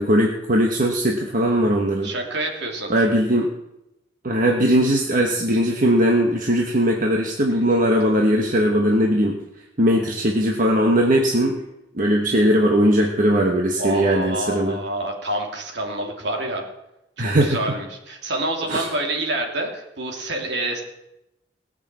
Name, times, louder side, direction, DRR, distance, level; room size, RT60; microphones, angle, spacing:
voice 1, 0.0-2.1 2.9-3.5 4.2-9.4 9.8-11.6 11.9-14.8 17.2-17.6 18.7-18.8, equal, 45° right, 1 dB, 1.4 m, -19 dB
voice 2, 2.0-3.1 13.8-16.6 17.2-20.8, right 1 dB, 65° right, 2 dB, 2.8 m, -27 dB
19.0 x 6.8 x 7.5 m, 0.89 s
head